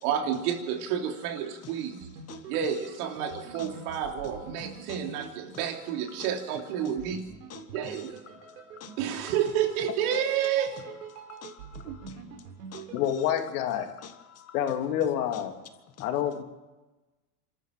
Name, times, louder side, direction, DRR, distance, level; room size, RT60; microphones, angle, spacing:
voice 1, 0.0-2.1 2.5-7.2 7.7-8.2 9.0-10.7 11.8-12.0, right 9 dB, 65° right, 3.3 m, -30 dB
sound 1, 1.9-6.2 7.0-13.1, right 6 dB, 90° right, 4.4 m, -45 dB
voice 2, 2.3-2.7 3.5-5.1 6.1-7.0 7.5-9.3 10.1-10.2 11.1-12.3 12.7-13.2 14.0-14.6 15.3-15.4 16.0-16.2, left 9 dB, 30° left, 1.6 m, -48 dB
voice 3, 12.9-13.9 14.5-15.5 16.0-16.4, left 10 dB, 70° left, 2.9 m, -27 dB
25.5 x 13.5 x 7.5 m
supercardioid pair, 125°, 47 cm